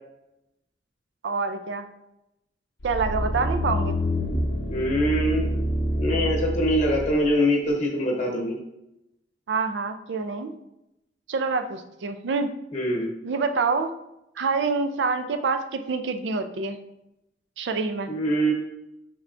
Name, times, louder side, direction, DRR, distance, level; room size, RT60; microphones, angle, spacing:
voice 1, 1.2-1.9 2.8-4.0 9.5-10.5 11.3-12.5 13.2-13.9 14.4-16.8 17.6-18.1, right 4 dB, 70° right, 8 dB, 0.4 m, -26 dB
sound 1, 2.8-7.2 7.7-7.8, equal, 65° left, 0.6 m, -27 dB
voice 2, 4.7-5.5 6.0-8.6 12.7-13.1 18.1-18.5, equal, 40° left, 0 dB, 1.0 m, -23 dB
5.7 x 3.2 x 2.5 m, 0.86 s
head